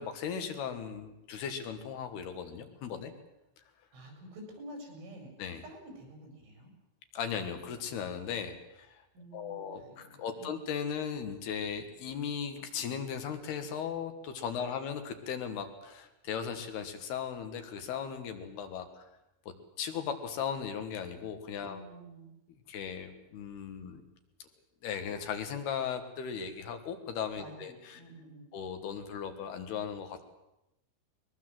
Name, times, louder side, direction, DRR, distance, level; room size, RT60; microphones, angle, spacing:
voice 1, 0.0-3.1 5.4-5.6 7.1-9.0 9.3-19.0 19.8-21.8 22.7-24.0 24.8-28.0 28.5-30.3, left 7 dB, 65° left, 7 dB, 3.2 m, -37 dB
voice 2, 3.9-5.3 5.6-6.7 9.1-10.5 14.5-14.7 21.6-22.3 27.4-28.5, right 1 dB, 85° right, 4 dB, 7.9 m, -49 dB
22.0 x 21.0 x 7.7 m, 0.91 s
omnidirectional pair, 5.4 m